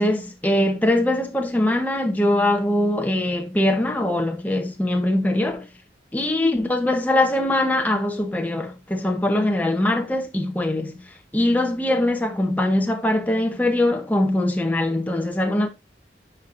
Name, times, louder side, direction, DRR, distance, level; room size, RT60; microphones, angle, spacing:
voice 1, 0.0-5.7 6.1-15.7, left 1 dB, 10° left, 0.8 m, -22 dB
10.0 x 4.4 x 2.5 m
head